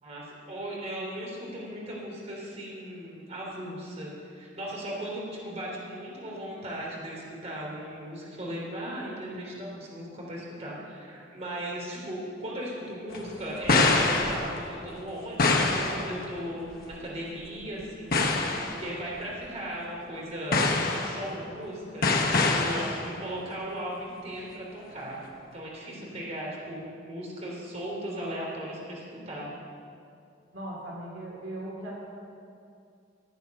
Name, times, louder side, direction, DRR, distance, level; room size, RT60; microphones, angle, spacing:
voice 1, 0.0-25.2 25.5-29.5, right 1 dB, 35° right, -4 dB, 3.2 m, -37 dB
sound 1, 13.1-14.8 15.4-16.2 16.7-16.9 17.8-17.9 18.1-18.9 19.4-19.5 20.5-21.3 22.0-23.1, left 3 dB, 50° left, 1.3 m, -25 dB
voice 2, 30.5-32.0, right 1 dB, 70° right, -3 dB, 2.6 m, -38 dB
15.5 x 8.4 x 6.5 m, 2.4 s
head